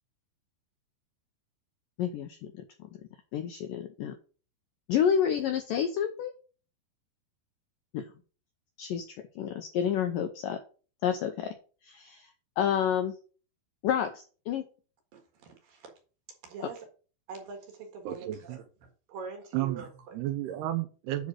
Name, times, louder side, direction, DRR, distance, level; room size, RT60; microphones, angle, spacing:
voice 1, 2.0-2.6 3.3-4.2 4.9-6.3 7.9-8.0 8.8-9.0 9.4-10.6 11.0-11.5 11.9-12.3 12.6-13.1 13.8-14.7, left 8 dB, 80° left, 1.9 m, -29 dB
voice 2, 15.1-15.9 16.4-16.9 17.3-20.2, right 5 dB, 60° right, 3.2 m, -44 dB
voice 3, 18.1-18.6 19.5-19.8 20.1-21.3, right 14 dB, 80° right, 2.6 m, -32 dB
10.0 x 3.9 x 6.3 m
omnidirectional pair, 5.0 m